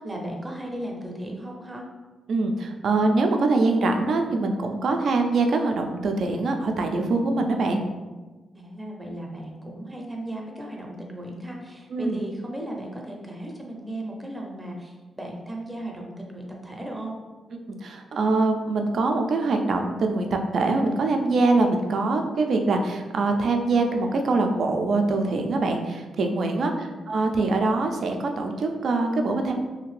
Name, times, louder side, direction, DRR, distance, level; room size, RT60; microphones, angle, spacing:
voice 1, 0.0-1.8 8.6-17.2 26.6-26.9, right 1 dB, 15° right, 0 dB, 0.5 m, -36 dB
voice 2, 2.3-7.8 11.9-12.2 17.7-29.6, right 3 dB, 65° right, 4 dB, 0.3 m, -23 dB
2.7 x 2.5 x 3.1 m, 1.3 s
cardioid pair, 95°, 0 cm